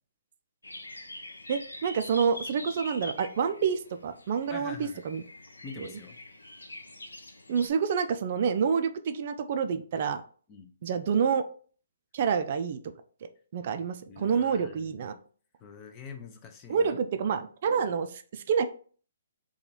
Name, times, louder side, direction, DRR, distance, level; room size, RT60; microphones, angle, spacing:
sound 1, 0.6-7.7, left 1 dB, 85° left, 0.5 m, -44 dB
voice 1, 1.5-5.2 5.8-5.9 7.5-10.2 10.8-11.4 12.1-12.8 13.5-15.1 16.7-18.7, right 6 dB, 50° right, 9 dB, 0.3 m, -28 dB
voice 2, 4.5-5.0 5.6-6.2 10.5-10.7 14.1-15.2 15.6-17.0, left 5 dB, 25° left, 5 dB, 0.6 m, -45 dB
2.9 x 2.3 x 3.9 m, 0.43 s
figure-of-eight pair, 135°, 0 cm